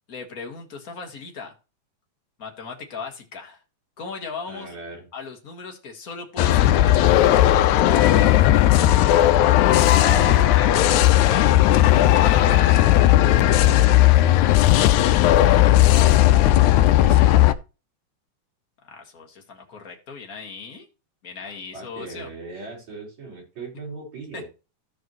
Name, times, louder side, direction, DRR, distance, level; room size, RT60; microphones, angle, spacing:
voice 1, 0.1-1.5 2.4-3.6 4.0-4.7 5.1-9.0 9.9-11.9 15.7-16.1 18.8-20.9 21.2-22.3 24.3-24.5, left 4 dB, 40° left, 1.5 m, -38 dB
voice 2, 4.5-5.1 12.7-14.7 17.0-17.4 21.7-24.5, right 3 dB, 65° right, 5.4 m, -39 dB
sound 1, 6.4-17.5, left 14 dB, 85° left, 1.9 m, -16 dB
15.0 x 5.1 x 3.0 m
omnidirectional pair, 3.3 m